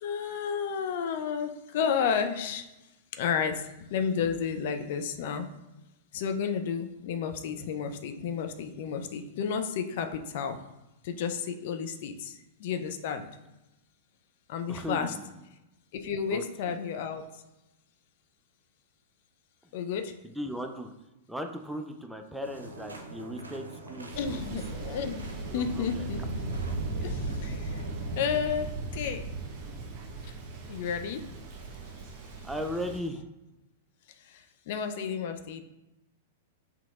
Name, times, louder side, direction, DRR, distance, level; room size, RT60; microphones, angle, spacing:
voice 1, 0.0-2.6 3.1-3.6 3.9-5.5 6.1-10.6 11.0-12.3 12.6-13.2 14.5-15.1 15.9-17.2 19.7-20.1 24.2-26.4 27.0-27.8 28.2-29.2 30.7-31.2 34.7-35.6, left 7 dB, 55° left, 7 dB, 0.4 m, -31 dB
voice 2, 14.7-15.4 16.3-16.8 20.2-20.9 21.3-24.6 25.5-26.1 32.4-33.2, equal, 5° right, 5 dB, 0.4 m, -37 dB
sound 1, 22.4-28.3, right 1 dB, 85° right, 0.6 m, -44 dB
Thunder, 24.1-33.0, right 3 dB, 40° right, 0.9 m, -37 dB
5.7 x 2.9 x 2.4 m, 0.97 s
figure-of-eight pair, 105°, 0 cm